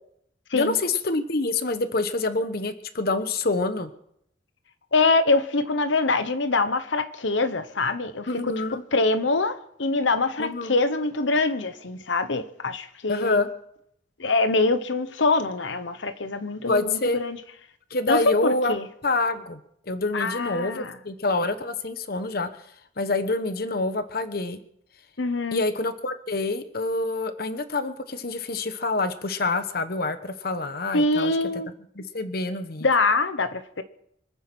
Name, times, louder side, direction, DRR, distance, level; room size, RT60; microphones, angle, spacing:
voice 1, 0.5-3.9 8.3-8.8 10.4-10.7 13.1-13.5 16.7-17.2 17.9-18.7 19.0-19.6 19.9-22.5 23.0-24.6 25.5-31.4 32.0-32.9, left 3 dB, 50° left, 1.1 m, -26 dB
voice 2, 4.9-8.5 8.9-13.4 14.2-17.4 18.1-18.8 20.1-20.9 25.2-25.6 30.9-31.7 32.8-33.8, left 3 dB, 70° left, 1.0 m, -24 dB
25.0 x 9.2 x 6.2 m
head